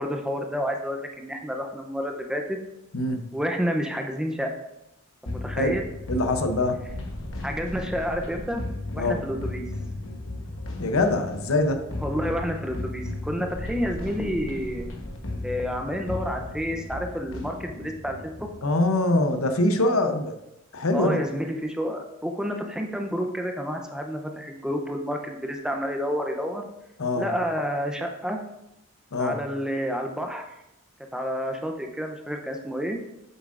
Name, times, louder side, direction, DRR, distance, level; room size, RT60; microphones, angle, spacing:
voice 1, 0.0-2.6 3.3-4.5 5.3-5.8 7.4-8.6 8.9-9.7 12.0-14.9 15.4-18.5 20.9-26.7 27.1-28.4 29.2-30.5 31.1-33.0, equal, 5° right, 3 dB, 0.6 m, -29 dB
voice 2, 2.9-3.3 5.6-5.8 6.1-6.8 9.0-9.2 10.8-11.8 18.6-20.4 20.7-21.2 27.0-27.3 29.1-29.4, left 2 dB, 85° left, 7 dB, 0.8 m, -23 dB
sound 1, 5.3-18.6, left 1 dB, 65° left, 1.2 m, -35 dB
8.1 x 7.2 x 2.5 m, 0.86 s
head